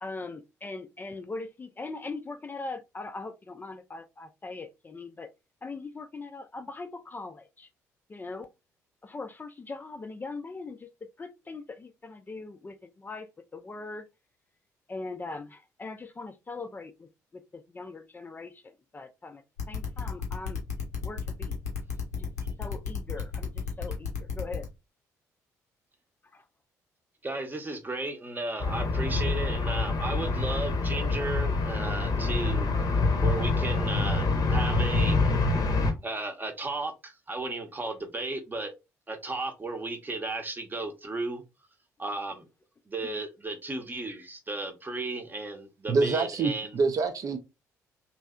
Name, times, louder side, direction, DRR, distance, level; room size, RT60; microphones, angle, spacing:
voice 1, 0.0-5.3 5.6-7.7 8.1-8.5 9.0-13.3 13.5-14.1 14.9-17.1 17.3-18.6 18.9-20.6 21.0-21.5 22.2-22.3 22.6-24.7 26.3-26.4, left 3 dB, 20° left, 0.4 m, -40 dB
sound 1, 19.6-24.6, left 6 dB, 85° left, 0.7 m, -33 dB
voice 2, 27.2-32.7 33.2-35.2 36.0-38.7 39.1-41.4 42.0-42.5 42.9-46.8, right 2 dB, 20° right, 0.8 m, -34 dB
sound 2, 28.6-35.9, left 3 dB, 45° left, 0.7 m, -26 dB
voice 3, 45.9-47.4, right 4 dB, 45° right, 0.4 m, -26 dB
3.1 x 2.7 x 2.2 m
figure-of-eight pair, 45°, 8 cm